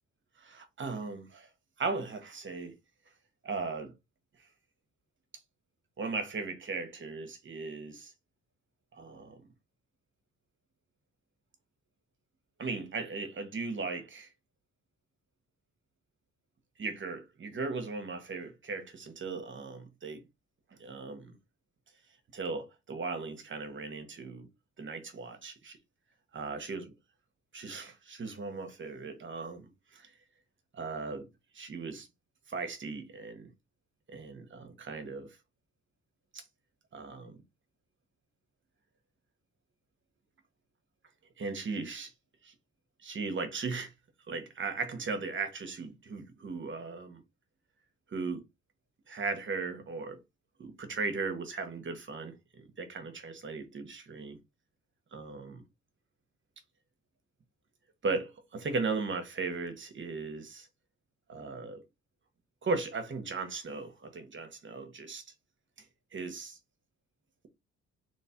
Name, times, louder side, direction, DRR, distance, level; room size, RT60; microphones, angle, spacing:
voice 1, 0.4-1.5 1.8-2.7 3.4-3.9 4.4-4.5 6.0-8.1 8.9-9.4 12.6-14.3 16.8-20.2 20.8-21.4 22.3-24.5 24.8-25.8 26.3-26.9 27.5-30.1 30.7-31.3 31.5-32.1 32.5-33.5 34.1-35.4 36.3-36.4 36.9-37.3 41.4-42.1 42.4-42.5 43.0-43.9 44.3-47.2 48.1-48.4 49.1-50.2 50.6-54.4 55.1-55.6 58.0-60.7 61.3-61.8 62.6-65.2 66.1-66.6, right 4 dB, 40° right, 1.3 m, -37 dB
3.2 x 3.1 x 4.3 m
cardioid pair, 90°, 30 cm